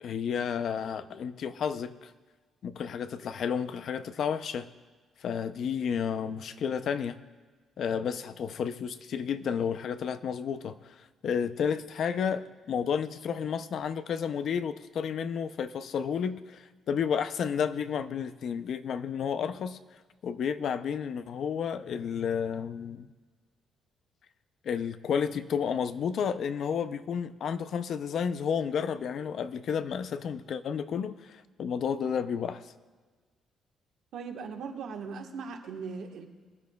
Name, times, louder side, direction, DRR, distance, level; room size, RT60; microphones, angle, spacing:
voice 1, 0.0-2.1 2.6-4.7 5.2-7.2 7.8-10.9 11.2-19.8 20.2-23.1 24.6-32.7, left 7 dB, 55° left, 0.5 m, -31 dB
voice 2, 34.1-36.3, right 5 dB, 70° right, 1.3 m, -39 dB
23.0 x 10.5 x 2.3 m
cardioid pair, 125°, 0 cm